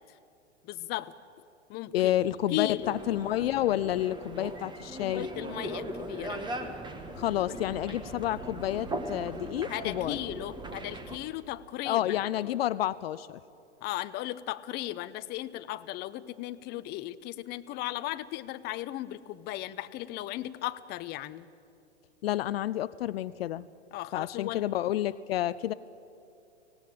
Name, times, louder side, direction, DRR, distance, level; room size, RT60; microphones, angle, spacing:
voice 1, 0.6-1.1 1.7-2.1 2.5-2.9 5.0-6.8 7.5-8.0 9.7-12.5 13.8-21.5 23.9-24.6, left 15 dB, 30° left, 13 dB, 0.7 m, -36 dB
voice 2, 1.9-5.3 7.2-10.2 11.9-13.4 22.2-23.7 24.1-25.7, left 13 dB, 60° left, 16 dB, 0.6 m, -29 dB
sound 1, 2.8-11.2, right 2 dB, 15° right, 1.6 m, -39 dB
25.0 x 17.5 x 8.6 m, 2.7 s
hypercardioid pair, 110°, 35 cm